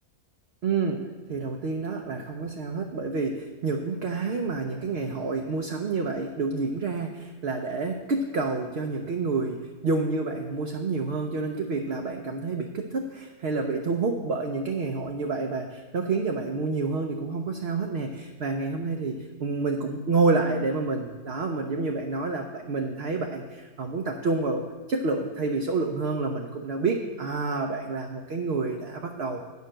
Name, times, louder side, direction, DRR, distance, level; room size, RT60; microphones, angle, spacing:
voice 1, 0.6-29.4, right 3 dB, 55° right, 2 dB, 0.8 m, -28 dB
9.6 x 5.6 x 7.6 m, 1.3 s
omnidirectional pair, 1.6 m